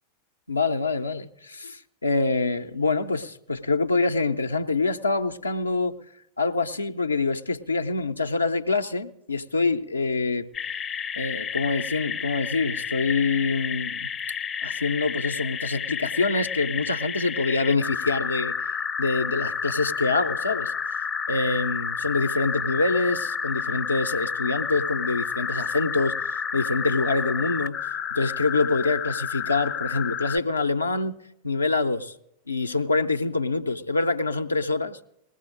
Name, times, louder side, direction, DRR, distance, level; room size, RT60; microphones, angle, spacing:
voice 1, 0.5-6.0 6.4-10.5 11.2-14.1 14.6-18.6 19.0-31.2 31.4-32.1 32.5-35.0, left 3 dB, 80° left, 7 dB, 0.5 m, -25 dB
sound 1, 10.5-30.4, left 6 dB, 25° left, 0.5 m, -30 dB
20.0 x 16.0 x 2.5 m, 0.83 s
figure-of-eight pair, 90°, 0 cm